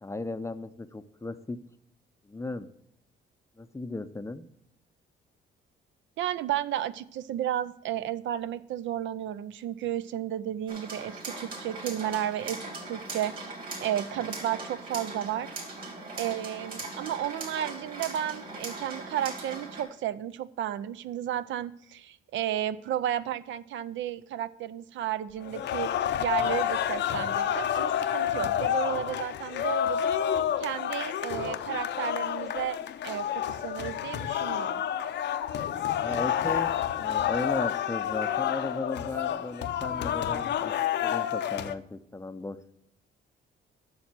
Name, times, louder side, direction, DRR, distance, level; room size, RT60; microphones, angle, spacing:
voice 1, 0.0-1.6 2.2-2.7 3.6-4.5 36.0-36.7 37.0-40.7 41.0-42.6, left 2 dB, 15° left, 11 dB, 0.5 m, -36 dB
voice 2, 6.2-12.6 12.9-13.5 13.8-15.5 16.2-25.9 26.2-30.1 30.6-32.8 33.0-34.8, right 11 dB, 75° right, 15 dB, 0.5 m, -33 dB
sound 1, 10.7-19.8, right 3 dB, 45° right, 3.4 m, -40 dB
sound 2, 25.4-41.7, left 10 dB, 60° left, 0.6 m, -29 dB
7.1 x 6.6 x 6.0 m, 0.74 s
cardioid pair, 90°, 20 cm